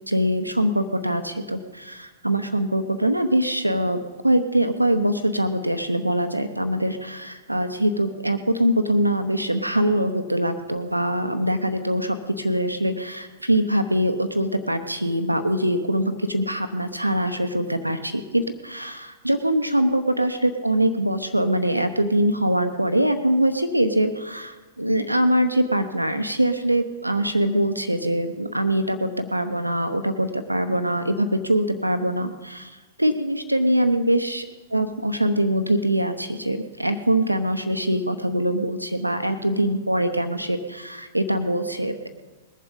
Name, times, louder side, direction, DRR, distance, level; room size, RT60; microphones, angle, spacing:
voice 1, 0.1-4.0 4.2-34.4 34.7-42.1, right 1 dB, 90° right, 9 dB, 0.9 m, -23 dB
21.0 x 7.5 x 5.3 m, 1.3 s
figure-of-eight pair, 100°, 0 cm